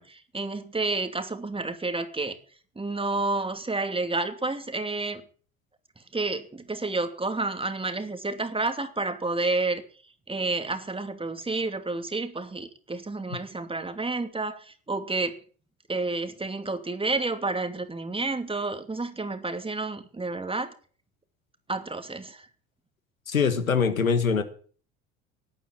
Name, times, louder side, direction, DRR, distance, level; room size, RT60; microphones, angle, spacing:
voice 1, 0.0-2.3 2.8-5.2 6.0-9.8 10.3-15.4 15.9-20.7 21.7-22.5, right 3 dB, 15° right, 2.6 m, -30 dB
voice 2, 23.3-24.4, left 5 dB, 85° left, 1.7 m, -23 dB
18.5 x 9.1 x 7.4 m
figure-of-eight pair, 65°, 40 cm